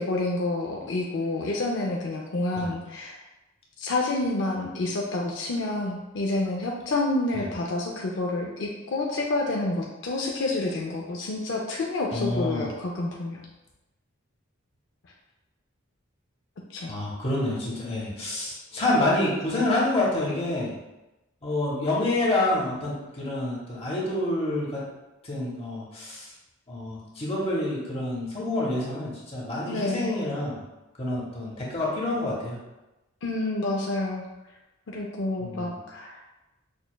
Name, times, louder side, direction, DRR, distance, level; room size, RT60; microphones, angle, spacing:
voice 1, 0.0-3.2 3.8-13.4 16.7-16.9 29.7-30.1 33.2-34.3 34.9-36.2, left 2 dB, 55° left, -1 dB, 0.4 m, -28 dB
voice 2, 12.1-12.7 16.9-20.7 21.4-24.8 25.2-26.3 26.7-30.6 31.0-32.6 35.4-35.7, left 2 dB, 25° left, -4 dB, 0.8 m, -28 dB
6.1 x 2.2 x 2.2 m, 1.0 s
head